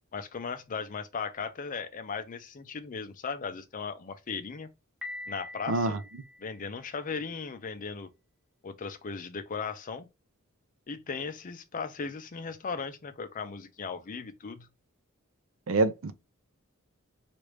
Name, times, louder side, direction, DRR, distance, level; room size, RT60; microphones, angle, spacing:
voice 1, 0.1-4.7 5.3-6.0 6.4-8.1 8.6-10.1 10.9-14.7, left 5 dB, 40° left, 0.5 m, -37 dB
Piano, 5.0-7.0, left 2 dB, 5° right, 1.0 m, -44 dB
voice 2, 5.7-6.0 15.7-16.1, right 2 dB, 65° right, 0.5 m, -26 dB
3.2 x 2.5 x 3.1 m
head